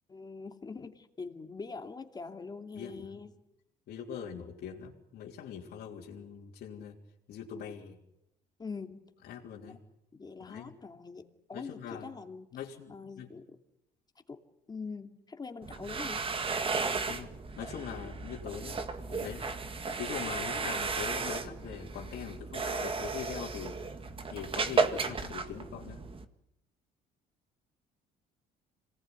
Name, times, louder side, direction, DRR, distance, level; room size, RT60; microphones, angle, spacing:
voice 1, 0.1-3.3 8.6-9.0 9.7-9.8 10.1-12.6 12.9-13.6 14.3-14.4 14.7-16.3 19.1-19.4, left 4 dB, 25° left, 6 dB, 2.7 m, -43 dB
voice 2, 2.7-3.2 3.9-7.0 7.3-8.0 9.2-9.8 10.4-10.8 11.5-12.1 12.5-13.3 17.1-17.3 17.6-18.8 19.1-19.5 19.9-23.8 24.3-26.0, left 8 dB, 70° left, -3 dB, 3.4 m, -42 dB
sound 1, 15.6-26.2, right 4 dB, 30° right, 1.9 m, -34 dB
26.5 x 19.5 x 9.8 m, 0.85 s
cardioid pair, 110°, 17 cm